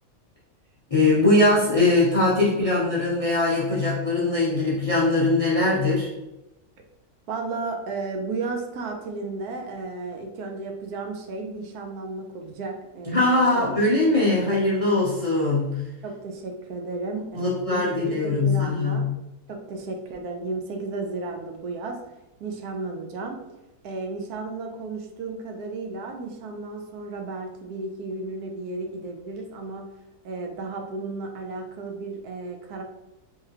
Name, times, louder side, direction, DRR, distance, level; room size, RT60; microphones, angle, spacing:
voice 1, 0.9-6.1 13.1-15.8 17.3-19.1, left 2 dB, 45° left, -6 dB, 0.4 m, -21 dB
voice 2, 7.3-13.3 13.5-13.8 16.0-19.1 19.5-22.0 22.4-23.4 23.8-29.8 30.2-32.8, right 3 dB, 75° right, 3 dB, 1.2 m, -33 dB
3.7 x 3.3 x 2.8 m, 0.94 s
omnidirectional pair, 1.7 m